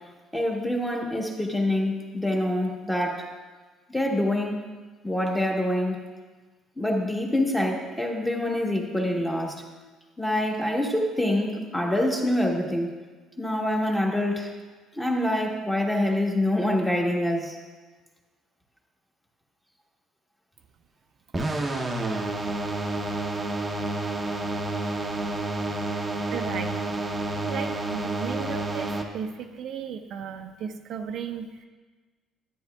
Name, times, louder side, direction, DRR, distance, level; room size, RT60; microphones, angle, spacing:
voice 1, 0.3-3.2 3.9-4.6 5.0-6.0 6.8-9.6 10.2-12.9 13.4-14.5 15.0-17.5, left 1 dB, 5° left, 0 dB, 1.1 m, -25 dB
sound 1, 21.3-29.0, right 2 dB, 15° right, 0.7 m, -29 dB
voice 2, 26.3-26.9 27.4-31.5, right 7 dB, 55° right, 5 dB, 0.5 m, -34 dB
12.0 x 9.2 x 2.3 m, 1.3 s
cardioid pair, 145°, 0 cm